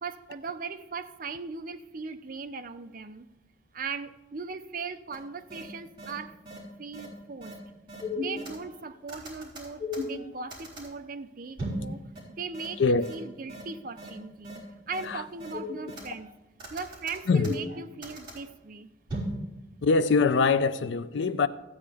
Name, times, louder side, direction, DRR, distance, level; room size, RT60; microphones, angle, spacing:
voice 1, 0.0-3.3 3.7-6.4 6.8-7.5 8.2-12.1 12.4-16.3 16.7-18.9, right 4 dB, 45° right, 0.5 m, -39 dB
sound 1, 5.1-5.2 5.5-5.6 6.0-6.1 6.5-6.6 6.9-7.1 7.4-7.5 7.9-8.7 9.1-10.9 11.6-11.9 12.2-12.3 12.5-12.7 13.0-13.1 13.5-13.6 14.0-14.1 14.4-14.6 14.9-15.0 15.4-16.2 16.6-18.4 19.1-19.4, left 2 dB, 25° right, 3.6 m, -35 dB
voice 2, 19.8-21.5, left 4 dB, 65° left, 0.4 m, -23 dB
14.5 x 8.5 x 3.5 m
head